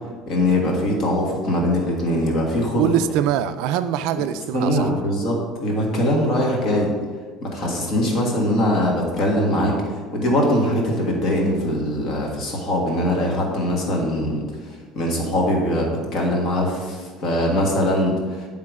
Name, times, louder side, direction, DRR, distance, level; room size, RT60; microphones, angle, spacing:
voice 1, 0.3-2.9 4.5-6.9 7.5-14.4 14.9-18.5, left 1 dB, 45° left, -1 dB, 1.6 m, -22 dB
voice 2, 2.8-4.9, right 10 dB, 65° right, 11 dB, 0.4 m, -23 dB
9.7 x 3.8 x 4.8 m, 1.5 s
cardioid pair, 165°, 0 cm